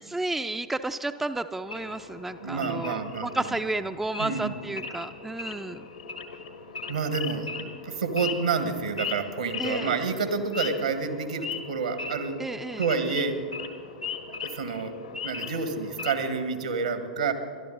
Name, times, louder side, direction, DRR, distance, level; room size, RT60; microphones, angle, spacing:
voice 1, 0.0-5.9 9.6-9.9 12.4-12.8, right 2 dB, 5° right, 9 dB, 0.5 m, -32 dB
Wild animals / Idling, 1.7-16.4, left 5 dB, 70° left, 1.3 m, -38 dB
voice 2, 2.4-3.3 4.2-4.5 6.9-12.4 12.8-13.4 14.3-14.9 15.2-17.3, right 5 dB, 70° right, 8 dB, 1.7 m, -29 dB
29.0 x 12.5 x 4.0 m, 2.2 s
figure-of-eight pair, 90°, 4 cm